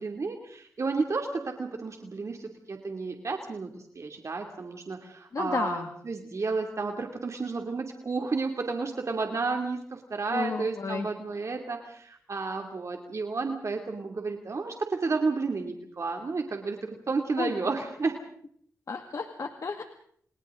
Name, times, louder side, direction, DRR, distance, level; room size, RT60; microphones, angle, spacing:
voice 1, 0.0-3.7 3.9-18.2, right 4 dB, 55° right, 3 dB, 2.6 m, -32 dB
voice 2, 5.3-5.9 10.3-11.1 17.4-17.5 18.9-19.8, left 4 dB, 60° left, 6 dB, 2.0 m, -32 dB
30.0 x 29.0 x 3.8 m, 0.63 s
cardioid pair, 55°, 6 cm